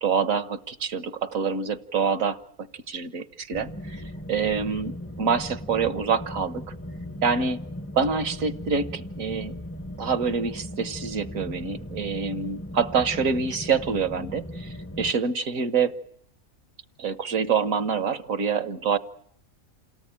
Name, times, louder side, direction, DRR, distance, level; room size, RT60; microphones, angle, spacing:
voice 1, 0.0-2.4 2.9-4.0 4.3-6.6 7.2-7.6 7.9-9.6 10.0-16.0 17.0-19.0, right 5 dB, 65° right, 13 dB, 1.5 m, -26 dB
sound 1, 3.5-15.1, equal, 10° left, 0.8 m, -38 dB
28.5 x 18.0 x 8.9 m, 0.72 s
omnidirectional pair, 1.5 m